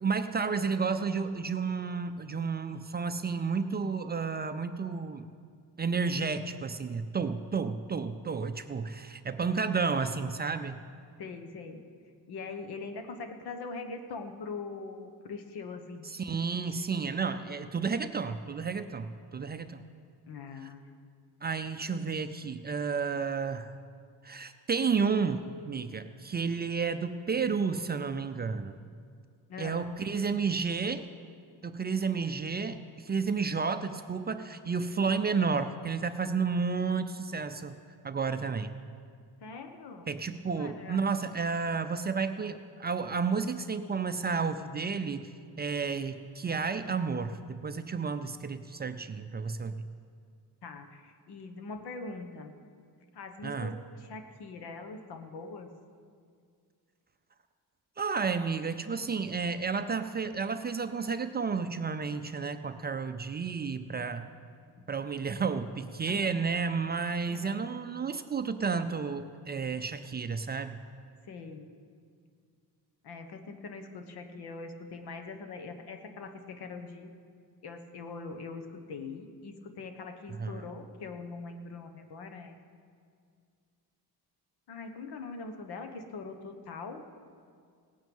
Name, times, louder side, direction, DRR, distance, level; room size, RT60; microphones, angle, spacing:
voice 1, 0.0-5.3 5.8-10.8 16.0-19.8 20.6-20.7 21.4-23.7 24.2-28.8 29.6-31.1 31.6-37.8 38.0-38.7 40.1-45.3 45.6-49.8 53.4-53.8 58.0-64.3 64.9-70.8 80.3-80.7, right 5 dB, 25° right, 9 dB, 0.4 m, -31 dB
voice 2, 11.2-11.8 12.3-16.1 20.3-21.0 29.5-29.9 39.4-40.1 40.6-41.1 50.6-52.5 53.1-55.7 64.8-64.9 66.1-66.3 67.3-67.6 71.3-71.7 73.0-77.1 77.6-82.5 84.7-87.1, left 4 dB, 70° left, 7 dB, 1.3 m, -42 dB
18.0 x 9.0 x 5.4 m, 2.2 s
cardioid pair, 120°, 40 cm